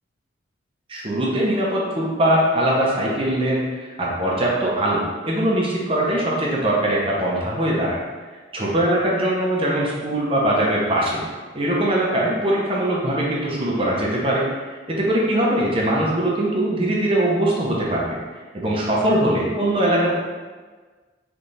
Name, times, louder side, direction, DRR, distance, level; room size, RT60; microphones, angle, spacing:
voice 1, 0.9-8.0 8.5-11.2 11.5-18.2 18.5-20.1, right 1 dB, 30° right, -4 dB, 0.8 m, -21 dB
3.4 x 3.3 x 4.0 m, 1.4 s
head